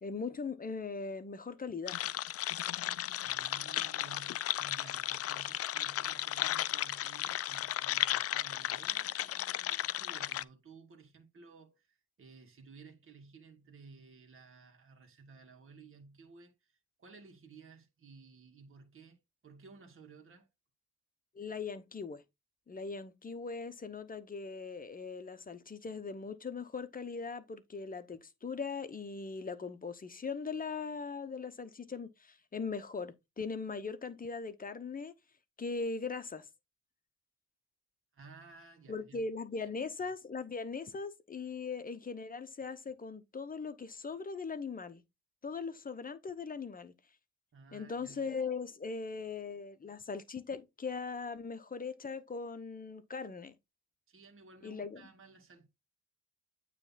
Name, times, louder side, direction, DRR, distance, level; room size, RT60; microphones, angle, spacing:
voice 1, 0.0-2.0 21.3-22.2 22.7-35.1 35.6-36.5 38.9-45.0 45.4-46.9 47.7-53.6 54.6-55.1, left 4 dB, 30° left, 1.0 m, -40 dB
sound 1, 1.9-10.4, left 13 dB, 50° left, 0.4 m, -35 dB
voice 2, 3.2-20.5 38.1-39.3 39.6-39.7 47.5-48.3 54.1-55.7, right 4 dB, 45° right, 2.0 m, -56 dB
8.9 x 3.4 x 4.1 m
cardioid pair, 90°, 30 cm